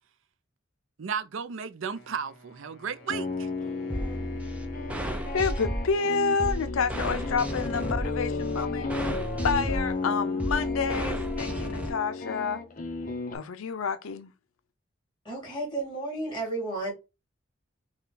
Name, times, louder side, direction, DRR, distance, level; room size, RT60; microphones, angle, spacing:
voice 1, 1.0-3.5, right 6 dB, 70° right, 0.5 m, -34 dB
Wind instrument woodwind instrument, 1.9-7.9, equal, 60° left, 1.5 m, -53 dB
sound 1, 2.9-13.3, left 3 dB, 40° left, 0.8 m, -33 dB
sound 2, 3.9-11.9, equal, 5° right, 0.6 m, -33 dB
voice 2, 5.3-8.9 9.4-12.6 13.3-14.3, left 5 dB, 80° left, 0.5 m, -29 dB
voice 3, 15.2-16.9, right 2 dB, 25° left, 2.8 m, -32 dB
5.7 x 2.3 x 3.8 m
head